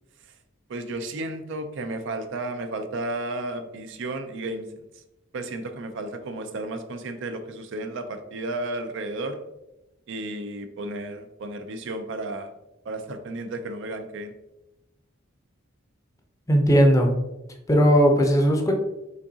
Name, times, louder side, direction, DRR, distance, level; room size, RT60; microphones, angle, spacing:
voice 1, 0.7-5.0 5.3-9.4 10.1-12.5 12.8-14.3, right 2 dB, 65° right, 8 dB, 0.5 m, -33 dB
voice 2, 16.5-17.1 17.7-18.7, equal, 15° left, 3 dB, 0.6 m, -17 dB
5.1 x 3.6 x 2.7 m, 0.93 s
head